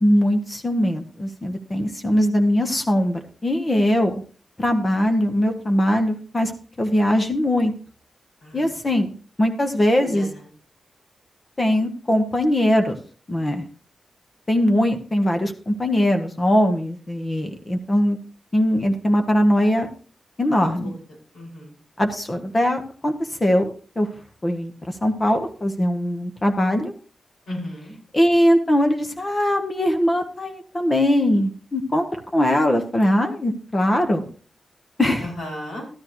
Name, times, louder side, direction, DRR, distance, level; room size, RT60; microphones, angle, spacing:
voice 1, 0.0-4.2 4.6-6.5 6.8-7.7 8.5-9.1 9.4-10.3 11.6-13.0 13.3-13.6 14.5-18.2 18.5-19.9 20.4-20.9 22.0-23.1 23.4-24.1 24.4-26.9 28.1-34.2 35.0-35.3, equal, 20° left, 5 dB, 1.2 m, -21 dB
voice 2, 8.4-8.9 10.0-10.4 20.8-20.9 21.3-21.7 27.5-27.9 35.2-35.9, left 1 dB, 80° left, -1 dB, 5.7 m, -35 dB
13.0 x 12.5 x 3.1 m, 0.39 s
wide cardioid pair, 165°, 0 cm